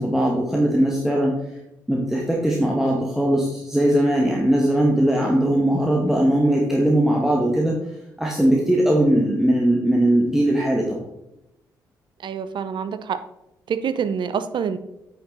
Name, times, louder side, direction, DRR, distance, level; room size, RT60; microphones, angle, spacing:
voice 1, 0.0-1.3 1.9-7.8 8.2-11.0, right 1 dB, 5° right, -2 dB, 1.8 m, -20 dB
voice 2, 12.2-13.2 13.7-14.8, right 7 dB, 55° right, 12 dB, 0.7 m, -26 dB
8.8 x 6.2 x 4.0 m, 0.89 s
hypercardioid pair, 45°, 10 cm